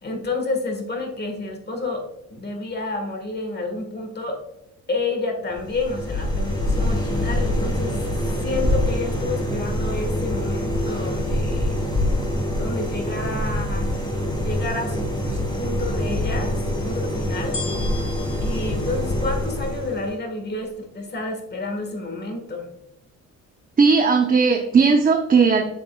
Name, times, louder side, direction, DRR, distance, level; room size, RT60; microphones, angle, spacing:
voice 1, 0.0-4.4 4.9-8.0 8.4-11.7 12.6-14.0 14.4-17.6 18.4-22.7, left 2 dB, 35° left, 3 dB, 1.6 m, -30 dB
sound 1, 5.5-20.2, left 1 dB, 15° left, 2.3 m, -25 dB
sound 2, 17.5-19.9 20.6-20.7, left 3 dB, 90° left, 1.3 m, -37 dB
voice 2, 23.8-25.6, right 5 dB, 30° right, 2 dB, 0.7 m, -17 dB
7.2 x 6.7 x 2.3 m, 0.84 s
cardioid pair, 90°, 30 cm